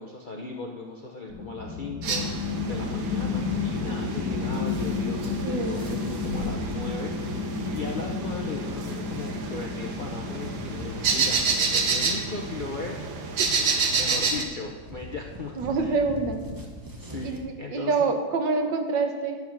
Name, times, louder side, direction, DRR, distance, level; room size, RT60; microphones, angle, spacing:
voice 1, 0.0-2.3 2.6-13.0 13.5-16.0 17.0-18.0, left 3 dB, 85° left, 0 dB, 0.4 m, -37 dB
sound 1, 1.3-13.4, left 5 dB, 55° left, 1.7 m, -32 dB
sound 2, 2.0-14.4, right 4 dB, 90° right, 1.8 m, -30 dB
sound 3, 5.1-17.4, left 1 dB, 20° right, 0.5 m, -44 dB
voice 2, 5.4-5.8 13.4-13.5 15.6-16.4 17.2-19.4, right 4 dB, 70° right, 5 dB, 1.7 m, -26 dB
11.0 x 7.2 x 5.9 m, 1.5 s
omnidirectional pair, 2.1 m